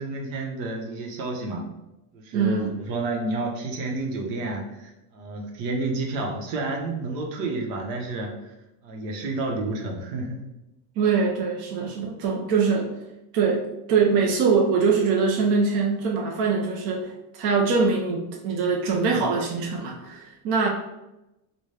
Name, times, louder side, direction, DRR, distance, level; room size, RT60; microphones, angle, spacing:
voice 1, 0.0-1.7 2.1-8.5 8.8-10.5, right 2 dB, 80° right, 1 dB, 1.0 m, -30 dB
voice 2, 2.3-2.8 11.0-12.9 13.3-20.7, right 5 dB, 55° right, -1 dB, 0.7 m, -23 dB
4.0 x 2.3 x 3.3 m, 0.93 s
cardioid pair, 135°, 46 cm